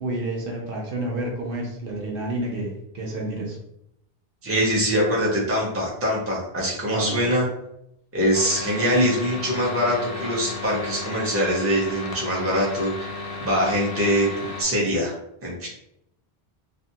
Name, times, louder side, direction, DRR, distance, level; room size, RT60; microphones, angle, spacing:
voice 1, 0.0-3.6 6.9-7.2, right 1 dB, 65° right, -1 dB, 0.8 m, -29 dB
voice 2, 4.4-7.5 8.1-15.1 15.4-15.7, equal, 15° right, -4 dB, 0.6 m, -23 dB
sound 1, 8.3-14.6, left 3 dB, 70° left, 0.8 m, -34 dB
2.6 x 2.3 x 2.7 m, 0.78 s
omnidirectional pair, 1.0 m